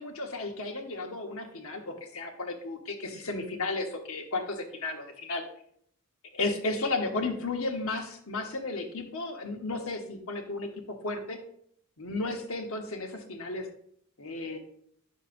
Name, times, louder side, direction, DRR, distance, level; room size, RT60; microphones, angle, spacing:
voice 1, 0.0-5.4 6.3-11.4 12.0-13.7 14.2-14.6, left 2 dB, 65° left, 4 dB, 1.1 m, -34 dB
9.3 x 6.3 x 2.6 m, 0.68 s
head